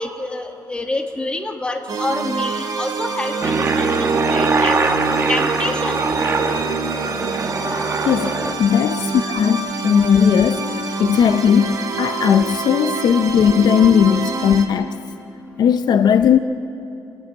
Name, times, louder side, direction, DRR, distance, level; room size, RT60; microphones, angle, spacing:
voice 1, 0.0-4.8 5.3-6.0, left 2 dB, 10° left, 1.4 m, -27 dB
sound 1, 1.9-14.7, right 4 dB, 55° right, 2.2 m, -26 dB
Aircraft, 3.4-8.5, right 3 dB, 30° right, 1.4 m, -21 dB
voice 2, 8.0-15.0 15.6-16.4, left 8 dB, 60° left, 0.7 m, -17 dB
27.0 x 16.5 x 9.0 m
cardioid pair, 145°, 8 cm